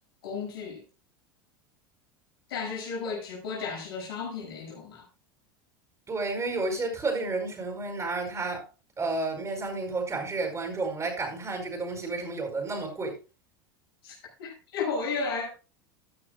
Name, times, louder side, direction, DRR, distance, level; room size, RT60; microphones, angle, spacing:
voice 1, 0.2-0.8 2.5-5.1 14.0-15.5, left 5 dB, 80° left, 6.7 m, -34 dB
voice 2, 6.1-8.6 9.0-13.1, right 3 dB, 25° right, 5.0 m, -31 dB
15.0 x 10.5 x 2.4 m
hypercardioid pair, 90°, 12 cm